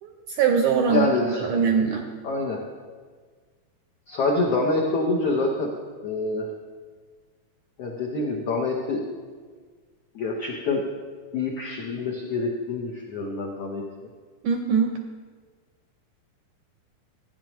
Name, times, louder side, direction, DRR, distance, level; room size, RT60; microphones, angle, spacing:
voice 1, 0.0-1.1 1.4-2.1 14.4-14.9, right 6 dB, 75° right, 3 dB, 1.8 m, -22 dB
voice 2, 0.9-1.5 2.2-2.6 4.1-5.7 6.0-6.5 7.8-9.0 10.1-10.8 11.3-13.8, left 3 dB, 80° left, -1 dB, 1.3 m, -26 dB
15.5 x 10.0 x 3.1 m, 1.5 s
omnidirectional pair, 4.3 m